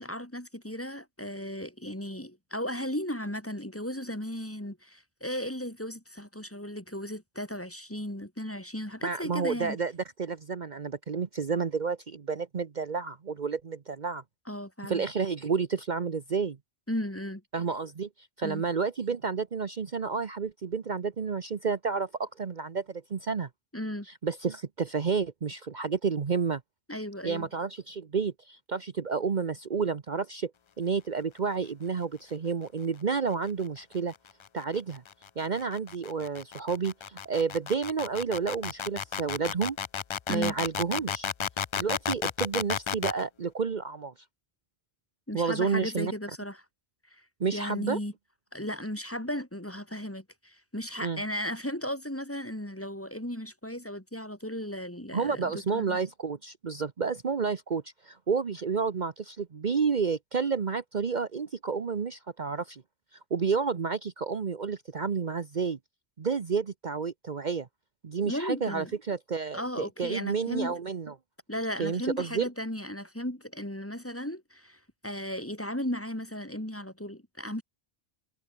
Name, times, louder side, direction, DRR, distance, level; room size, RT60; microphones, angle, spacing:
voice 1, 0.0-9.8 14.5-15.0 16.9-17.4 18.4-18.6 23.7-24.1 26.9-27.5 40.3-40.5 45.3-46.6 47.1-47.2 47.5-48.1 48.5-56.0 68.2-68.9 69.5-70.8 71.5-77.6, equal, 10° left, 2.5 m, -35 dB
voice 2, 9.0-9.9 10.2-14.2 14.8-16.6 17.5-18.1 18.4-23.5 24.2-26.6 27.2-30.5 30.8-34.1 34.5-35.0 35.4-39.8 40.3-41.3 41.7-44.1 45.3-46.1 47.4-48.0 51.0-51.2 55.1-62.8 63.3-65.8 66.2-67.7 68.0-71.1 71.8-72.5, right 5 dB, 45° right, 1.0 m, -30 dB
sound 1, 34.0-43.2, left 7 dB, 55° left, 0.3 m, -33 dB
omnidirectional pair, 1.1 m